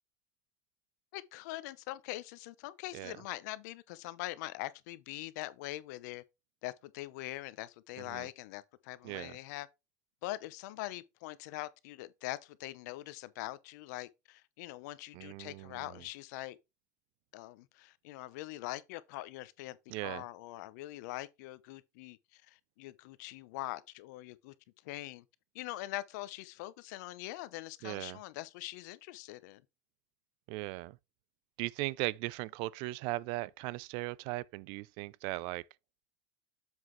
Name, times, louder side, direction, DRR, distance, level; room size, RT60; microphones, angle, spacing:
voice 1, 1.1-6.2 6.6-9.7 10.2-16.6 17.3-24.5 24.8-25.2 25.5-29.6, left 17 dB, 75° left, 0.8 m, -43 dB
voice 2, 15.1-15.9 19.9-20.2 27.8-28.2 30.5-31.0 31.6-35.7, right 19 dB, 65° right, 0.4 m, -38 dB
7.4 x 5.7 x 3.2 m
supercardioid pair, 110°, 9 cm